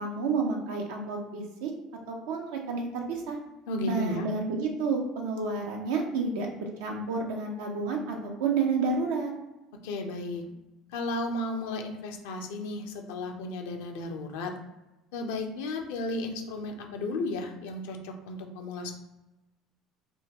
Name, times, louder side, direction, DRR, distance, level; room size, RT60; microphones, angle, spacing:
voice 1, 0.0-1.7 2.1-3.4 3.8-9.3, right 4 dB, 80° right, 1 dB, 0.6 m, -30 dB
voice 2, 3.7-4.3 9.8-10.4 10.9-14.5 15.1-19.0, left 2 dB, 75° left, 3 dB, 0.5 m, -34 dB
3.5 x 2.2 x 2.8 m, 0.98 s
hypercardioid pair, 70°, 0 cm